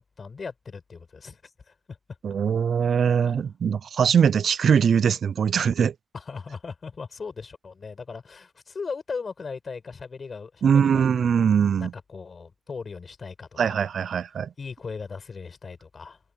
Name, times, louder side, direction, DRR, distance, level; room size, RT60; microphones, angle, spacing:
voice 1, 0.0-2.0 3.3-3.4 6.1-11.5 11.8-13.8 14.6-16.2, left 5 dB, 50° left, 7.7 m, -38 dB
voice 2, 2.2-5.9 10.6-11.9 13.6-14.5, right 7 dB, 85° right, 0.3 m, -21 dB
wide cardioid pair, 90°, 0 cm